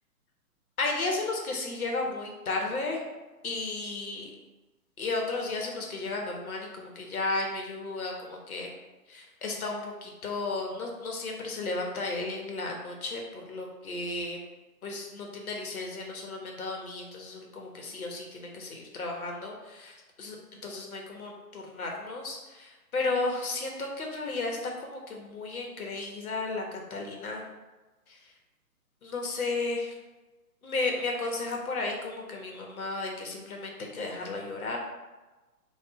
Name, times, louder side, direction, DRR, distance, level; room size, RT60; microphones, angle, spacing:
voice 1, 0.8-3.0 3.4-4.3 5.0-8.7 9.1-14.4 14.8-27.4 28.1-28.3 29.0-29.9 30.6-34.8, left 3 dB, 65° left, 0 dB, 1.3 m, -34 dB
4.6 x 2.7 x 4.0 m, 1.2 s
hypercardioid pair, 150°, 47 cm